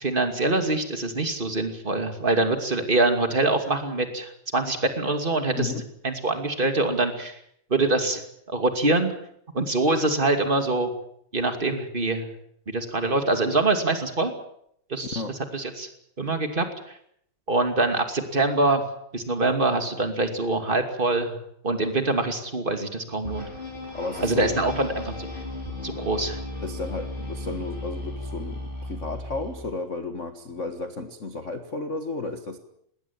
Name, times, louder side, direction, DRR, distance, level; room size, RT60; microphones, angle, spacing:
voice 1, 0.0-5.7 6.0-7.4 7.7-8.2 8.5-9.1 9.5-10.9 11.3-12.3 12.7-14.3 14.9-15.2 15.5-15.9 16.2-16.9 17.5-18.8 19.1-21.4 21.6-23.5 24.2-25.3 25.8-26.4, right 2 dB, 15° right, 6 dB, 2.2 m, -24 dB
sound 1, 23.2-29.8, left 1 dB, 15° left, 4.9 m, -35 dB
voice 2, 23.9-24.7 26.6-32.6, left 3 dB, 50° left, 7 dB, 0.9 m, -33 dB
20.5 x 18.0 x 9.0 m, 0.71 s
omnidirectional pair, 3.9 m